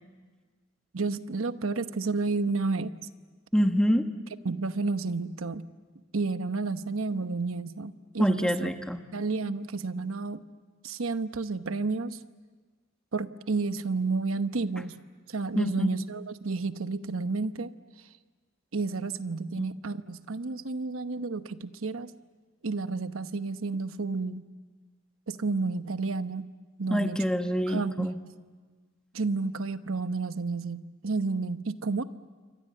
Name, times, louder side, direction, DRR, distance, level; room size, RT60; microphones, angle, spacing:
voice 1, 0.9-2.9 4.4-5.7 6.1-8.7 9.1-10.4 10.8-12.2 13.1-15.0 15.3-17.8 18.7-22.1 22.6-24.5 25.3-26.5 26.8-27.2 27.7-28.1 29.1-32.0, right 3 dB, 85° right, 11 dB, 1.0 m, -31 dB
voice 2, 3.5-4.1 8.2-9.0 15.5-15.9 19.6-19.7 26.9-28.2, equal, 5° left, 6 dB, 1.4 m, -26 dB
27.5 x 24.5 x 8.6 m, 1.4 s
head